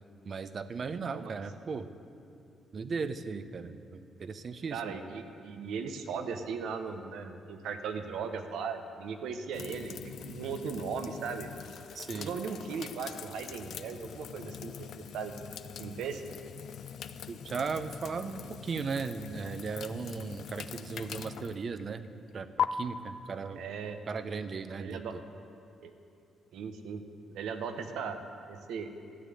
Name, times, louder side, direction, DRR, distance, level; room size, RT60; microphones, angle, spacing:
voice 1, 0.2-1.9 2.7-4.9 11.9-12.3 17.3-22.1 22.3-23.6 24.1-25.0, right 5 dB, 45° right, 11 dB, 0.7 m, -37 dB
voice 2, 1.0-1.4 4.7-11.5 12.1-15.3 15.8-16.2 23.5-24.0 24.8-25.2 25.8-25.9 26.5-27.0 27.3-28.2 28.5-28.9, right 6 dB, 80° right, 7 dB, 1.0 m, -38 dB
sound 1, 9.5-22.6, left 8 dB, 65° left, 0.5 m, -41 dB
13.5 x 9.4 x 7.8 m, 2.6 s
cardioid pair, 90°, 0 cm